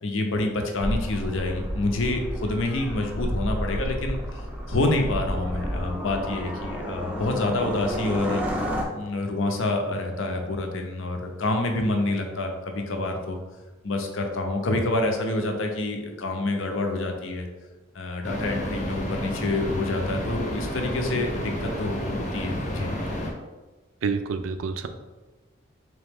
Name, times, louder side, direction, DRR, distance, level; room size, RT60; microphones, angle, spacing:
voice 1, 0.0-4.4 4.7-8.4 8.9-13.4 13.8-17.5 17.9-22.9, left 2 dB, 75° left, 3 dB, 0.6 m, -27 dB
sound 1, 0.8-8.8, equal, 5° right, 0.4 m, -31 dB
sound 2, 18.2-23.3, equal, 35° left, 0.7 m, -31 dB
voice 2, 24.0-24.9, right 5 dB, 80° right, 8 dB, 0.4 m, -28 dB
3.6 x 2.9 x 3.5 m, 1.2 s
head